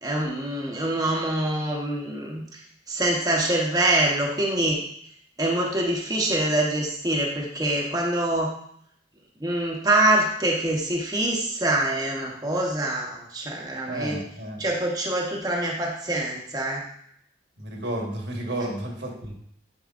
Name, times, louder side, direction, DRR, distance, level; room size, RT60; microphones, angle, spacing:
voice 1, 0.0-2.6 2.9-4.8 5.4-8.5 9.4-14.2 14.6-16.8, right 1 dB, 20° right, -2 dB, 0.9 m, -25 dB
voice 2, 13.9-14.6 17.6-19.3, right 1 dB, 70° right, 1 dB, 1.4 m, -32 dB
9.4 x 4.7 x 2.5 m, 0.69 s
head